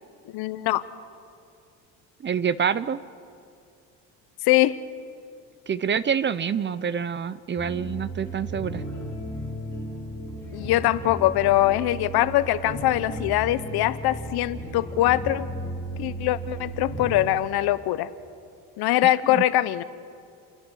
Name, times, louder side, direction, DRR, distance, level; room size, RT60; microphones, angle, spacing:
voice 1, 0.3-0.8 4.5-4.8 10.5-15.5 15.9-18.1 18.8-19.8, left 15 dB, 75° left, 15 dB, 1.0 m, -22 dB
voice 2, 2.2-3.0 5.7-8.8 19.3-19.4, right 7 dB, 30° right, 17 dB, 0.6 m, -26 dB
sound 1, 7.6-17.3, right 1 dB, 5° left, 5.0 m, -35 dB
29.0 x 11.0 x 9.9 m, 2.4 s
cardioid pair, 105°, 38 cm